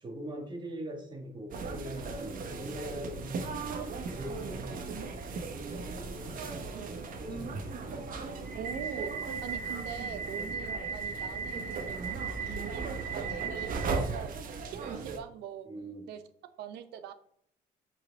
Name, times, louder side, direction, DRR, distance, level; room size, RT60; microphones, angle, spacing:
voice 1, 0.0-3.5 4.1-8.1 10.5-10.6 14.9-15.1 15.6-16.1, right 1 dB, 25° right, 3 dB, 1.8 m, -43 dB
sound 1, 1.5-15.2, right 4 dB, 55° right, 1.2 m, -36 dB
voice 2, 8.5-12.0 12.5-15.7 16.1-16.2 16.6-17.1, right 8 dB, 80° right, 10 dB, 0.8 m, -42 dB
8.0 x 4.7 x 3.6 m, 0.67 s
cardioid pair, 110°, 17 cm